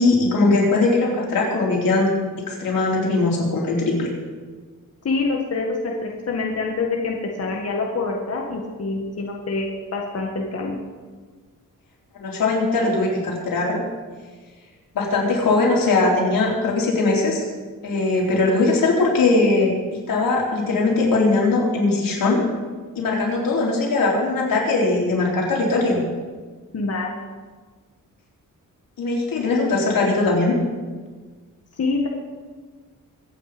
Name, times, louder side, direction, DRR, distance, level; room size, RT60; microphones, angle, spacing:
voice 1, 0.0-2.1 2.5-4.1 12.2-13.8 14.9-17.4 17.8-19.7 20.1-22.4 23.0-26.0 29.0-30.6, left 3 dB, 90° left, -3 dB, 4.3 m, -20 dB
voice 2, 5.0-10.8 26.7-27.1 31.8-32.1, left 3 dB, 45° left, 0 dB, 1.8 m, -26 dB
24.0 x 8.9 x 5.2 m, 1.5 s
wide cardioid pair, 120°, 33 cm